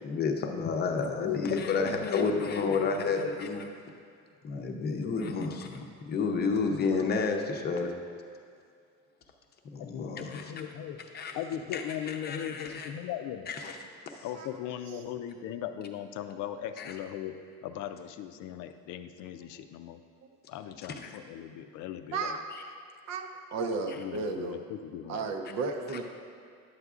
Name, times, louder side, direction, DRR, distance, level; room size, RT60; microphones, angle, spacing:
voice 1, 0.0-3.6 4.4-7.9 9.7-10.4 11.1-11.4 11.7-11.8 12.1-12.9 13.5-13.8 16.8-16.9 21.0-21.1 25.9-26.0, left 4 dB, 35° left, 3 dB, 0.6 m, -31 dB
voice 2, 1.1-3.3 4.8-5.4 9.8-11.0 11.3-13.5 14.2-20.0 20.5-22.4 24.0-25.2, left 10 dB, 90° left, 9 dB, 0.5 m, -38 dB
voice 3, 22.1-22.4 23.1-24.5 25.1-26.1, right 4 dB, 65° right, 5 dB, 0.7 m, -34 dB
11.0 x 8.0 x 2.4 m, 2.2 s
cardioid pair, 155°, 29 cm